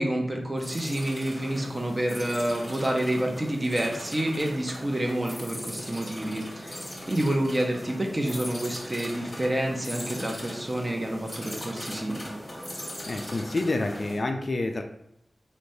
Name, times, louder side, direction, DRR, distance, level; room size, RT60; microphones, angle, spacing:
voice 1, 0.0-6.7 7.1-12.4, right 1 dB, 30° right, 2 dB, 0.6 m, -28 dB
sound 1, 0.6-14.2, equal, 20° left, 0.8 m, -39 dB
voice 2, 13.1-14.8, left 2 dB, 55° left, 5 dB, 0.3 m, -28 dB
3.1 x 2.1 x 2.6 m, 0.80 s
cardioid pair, 45°, 0 cm